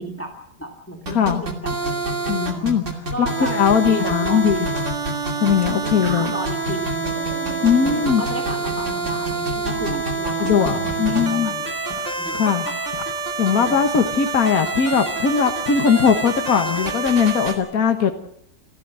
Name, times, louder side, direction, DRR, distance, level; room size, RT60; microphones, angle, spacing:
voice 1, 0.0-2.7 3.1-4.6 5.8-7.2 8.0-11.7 12.2-12.7 13.5-13.8, equal, 10° left, 2 dB, 2.3 m, -34 dB
voice 2, 1.1-1.4 2.3-2.8 3.2-4.7 5.4-6.3 7.6-8.2 10.4-11.5 12.3-12.7 13.4-18.1, left 7 dB, 55° left, 6 dB, 1.8 m, -19 dB
sound 1, 1.1-17.5, right 3 dB, 45° right, 3.0 m, -26 dB
sound 2, 4.5-5.0 5.5-6.1 6.7-7.3 7.8-8.2 8.8-9.3 10.9-11.4 11.9-12.4 12.9-13.4 13.9-14.4 14.9-15.4, left 2 dB, 75° left, 3.2 m, -41 dB
sound 3, 6.0-10.9, right 3 dB, 60° right, 4.4 m, -37 dB
28.5 x 12.5 x 7.6 m, 0.73 s
omnidirectional pair, 1.8 m